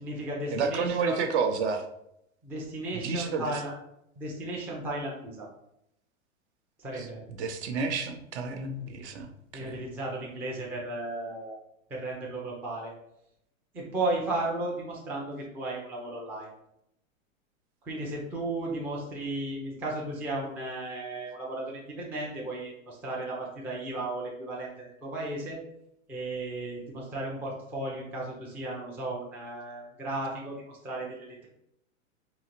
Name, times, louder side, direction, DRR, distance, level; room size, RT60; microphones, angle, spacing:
voice 1, 0.0-1.2 2.4-3.7 4.2-5.5 6.8-7.2 9.5-11.6 11.9-12.9 13.7-16.5 17.8-25.6 26.1-31.5, right 2 dB, 5° right, -3 dB, 0.3 m, -35 dB
voice 2, 0.5-1.9 2.9-3.5 6.9-7.1 7.4-9.8, right 5 dB, 55° right, 6 dB, 0.6 m, -30 dB
3.8 x 2.8 x 2.9 m, 0.78 s
hypercardioid pair, 115°, 40 cm